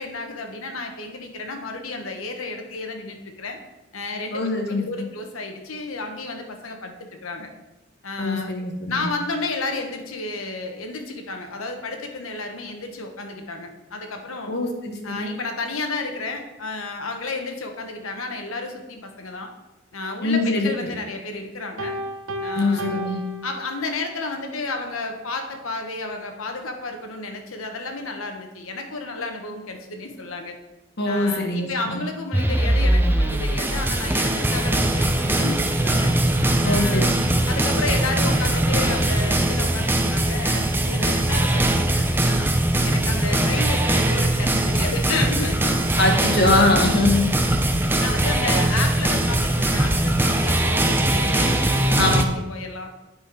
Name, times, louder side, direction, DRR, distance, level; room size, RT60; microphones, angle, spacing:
voice 1, 0.0-3.6 3.9-4.4 4.7-7.5 8.0-8.5 8.9-14.5 15.0-19.5 19.9-22.0 22.4-23.0 23.4-30.6 31.1-36.1 36.6-37.1 37.5-42.5 42.8-45.8 46.4-46.7 47.9-52.2 52.5-52.9, left 3 dB, 85° left, 4 dB, 1.2 m, -32 dB
voice 2, 4.3-5.1 8.2-9.1 14.5-15.3 20.2-20.9 22.5-23.2 31.0-32.0 36.6-37.4 46.0-47.3 52.0-52.3, left 2 dB, 55° left, 3 dB, 1.3 m, -23 dB
Piano, 21.8-24.2, equal, 70° right, 0.8 m, -32 dB
sound 1, 32.3-52.2, right 1 dB, 10° right, 0.6 m, -21 dB
8.7 x 5.7 x 4.8 m, 1.0 s
head